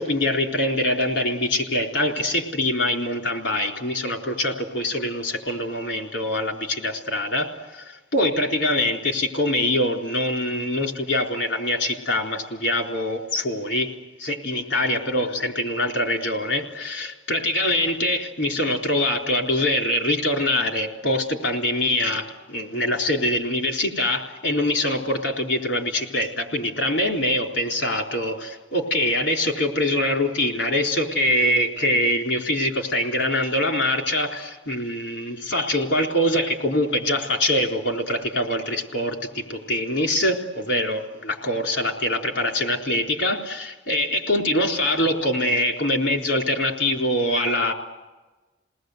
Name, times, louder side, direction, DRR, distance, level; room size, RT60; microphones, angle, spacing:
voice 1, 0.0-13.9 14.2-47.7, left 1 dB, 85° left, 1 dB, 4.0 m, -24 dB
29.5 x 19.5 x 8.1 m, 1.2 s
head